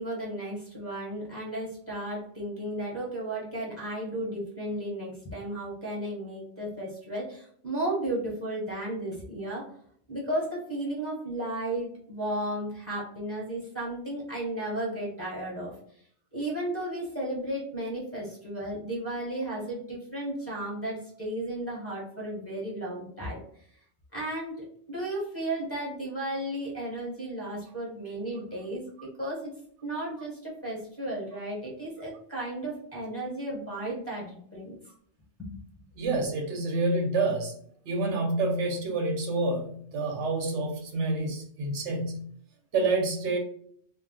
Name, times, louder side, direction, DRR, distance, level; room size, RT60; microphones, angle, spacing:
voice 1, 0.0-9.7 10.1-15.7 16.3-23.4 24.1-29.5 29.8-34.8 35.4-35.6, right 1 dB, 15° left, -6 dB, 0.9 m, -34 dB
voice 2, 36.0-37.5 37.9-42.3 42.7-43.4, right 2 dB, 80° right, 2 dB, 1.0 m, -28 dB
2.3 x 2.2 x 3.7 m, 0.63 s
omnidirectional pair, 1.2 m